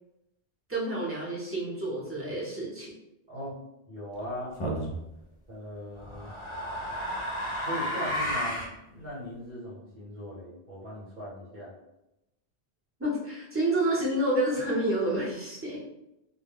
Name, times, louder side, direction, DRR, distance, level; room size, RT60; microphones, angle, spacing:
voice 1, 0.7-2.9 13.0-16.0, right 1 dB, 15° right, -7 dB, 0.7 m, -29 dB
voice 2, 3.9-4.5 5.5-6.3 7.6-8.6 8.9-11.7, equal, 50° right, -6 dB, 1.0 m, -39 dB
sound 1, 4.6-5.0 6.0-8.7, equal, 50° left, 0.3 m, -32 dB
2.2 x 2.1 x 3.5 m, 0.89 s
omnidirectional pair, 1.1 m